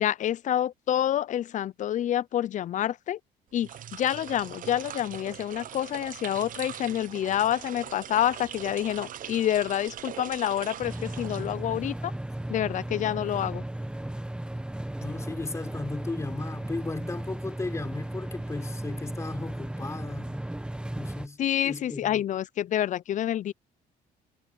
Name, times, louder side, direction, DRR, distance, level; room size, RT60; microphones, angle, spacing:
voice 1, 0.0-3.2 3.5-12.1 12.5-13.6 21.4-23.5, left 11 dB, 45° left, 0.5 m, -28 dB
sound 1, 3.5-11.9, right 10 dB, 55° right, 1.0 m, -41 dB
sound 2, 10.8-21.3, right 1 dB, 5° right, 1.5 m, -35 dB
voice 2, 15.0-20.5 21.0-21.4 21.6-22.2, left 3 dB, 15° left, 3.8 m, -36 dB
cardioid pair, 110°, 17 cm